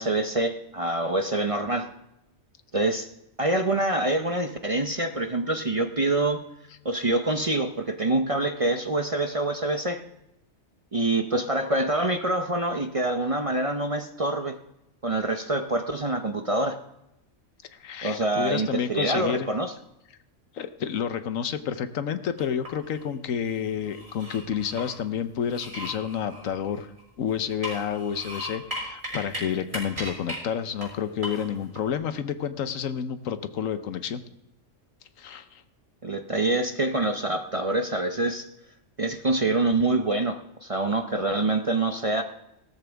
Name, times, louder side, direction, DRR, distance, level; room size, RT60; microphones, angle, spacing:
voice 1, 0.0-1.9 2.7-3.1 3.4-6.4 6.8-10.0 10.9-14.6 15.0-16.8 18.0-19.7 36.0-38.4 39.0-42.2, right 2 dB, 35° right, 6 dB, 0.7 m, -26 dB
voice 2, 17.7-19.5 20.5-26.9 27.2-34.2 35.2-35.6, left 8 dB, 80° left, 11 dB, 1.2 m, -30 dB
sound 1, 22.4-23.0 23.5-24.9 25.4-27.1 27.5-29.4 29.7-30.4 30.8-30.9 31.2-31.8, equal, 50° right, 6.4 m, -37 dB
18.0 x 13.0 x 3.5 m, 0.85 s
omnidirectional pair, 1.4 m